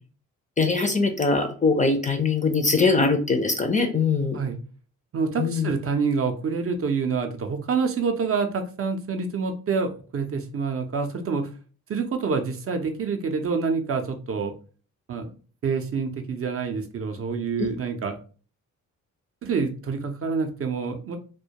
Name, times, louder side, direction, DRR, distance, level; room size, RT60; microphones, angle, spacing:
voice 1, 0.6-4.4 5.4-5.7, left 4 dB, 25° left, 5 dB, 0.4 m, -22 dB
voice 2, 5.1-11.5 11.9-14.5 15.1-15.3 15.6-18.2 19.4-21.2, right 5 dB, 45° right, 5 dB, 0.4 m, -27 dB
2.2 x 2.1 x 2.8 m, 0.38 s
cardioid pair, 70°, 33 cm